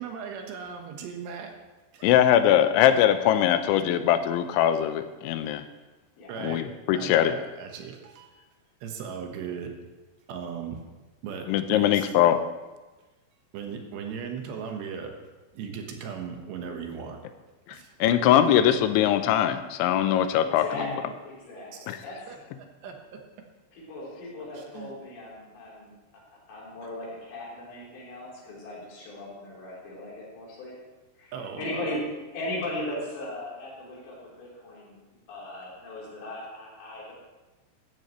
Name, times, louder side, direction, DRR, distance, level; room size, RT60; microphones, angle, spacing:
voice 1, 0.0-1.6 1.9-2.1 6.3-6.7 6.9-8.3 8.8-9.8 10.3-10.8 11.2-12.1 13.5-15.1 15.5-17.2 17.7-18.0 21.7-21.8 22.3-22.4 22.8-23.2 24.5-24.9 31.3-31.9, right 6 dB, 75° right, 3 dB, 3.3 m, -37 dB
voice 2, 2.0-5.6 6.4-7.3 11.5-12.4 17.7-20.7 21.9-22.0, left 11 dB, 90° left, 10 dB, 3.1 m, -21 dB
voice 3, 20.4-22.3 23.7-26.2 26.5-30.7 31.2-35.0 35.3-37.1, left 1 dB, 70° left, -5 dB, 6.0 m, -38 dB
15.0 x 13.5 x 3.2 m, 1.2 s
omnidirectional pair, 5.3 m